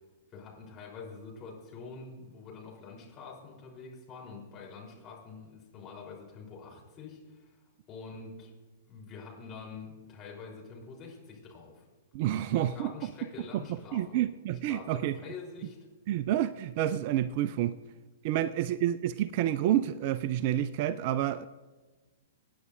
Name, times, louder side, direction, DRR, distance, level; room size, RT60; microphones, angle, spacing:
voice 1, 0.3-7.6 7.9-8.5 8.9-11.9 12.4-14.2 14.7-15.8 18.4-18.5, left 4 dB, 25° left, -2 dB, 3.6 m, -46 dB
voice 2, 12.1-12.9 13.9-15.2 16.1-17.7 18.2-21.4, right 12 dB, 40° right, 16 dB, 0.4 m, -29 dB
25.0 x 9.4 x 2.6 m, 1.2 s
figure-of-eight pair, 110°, 0 cm